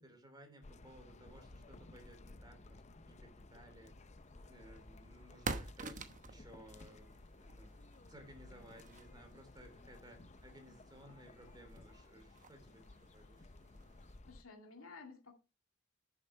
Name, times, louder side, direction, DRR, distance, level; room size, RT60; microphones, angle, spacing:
voice 1, 0.0-2.8 3.1-3.9 4.5-6.0 6.3-7.8 8.1-12.9 13.1-13.4, right 1 dB, 20° right, 5 dB, 3.3 m, -59 dB
sound 1, 0.6-14.4, left 2 dB, 35° left, 0.6 m, -57 dB
sound 2, 3.9-14.2, right 3 dB, 40° right, 1.0 m, -50 dB
voice 2, 14.2-15.3, left 4 dB, 85° left, 2 dB, 2.2 m, -53 dB
11.0 x 7.0 x 4.5 m, 0.31 s
head